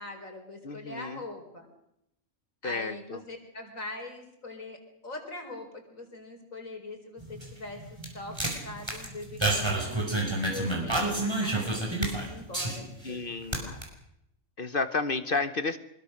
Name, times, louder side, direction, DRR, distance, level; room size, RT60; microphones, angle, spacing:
voice 1, 0.0-1.7 2.6-4.8 5.0-7.8 8.1-10.0 10.4-13.2 13.6-13.8, left 2 dB, 75° left, 4 dB, 4.7 m, -42 dB
voice 2, 0.6-1.2 2.6-3.2 10.8-11.5 13.0-13.7 14.6-15.8, left 3 dB, 45° left, 11 dB, 1.1 m, -32 dB
sound 1, 7.2-13.1 13.4-13.8, right 2 dB, 20° right, 5.5 m, -30 dB
24.5 x 22.0 x 6.5 m, 0.80 s
omnidirectional pair, 1.4 m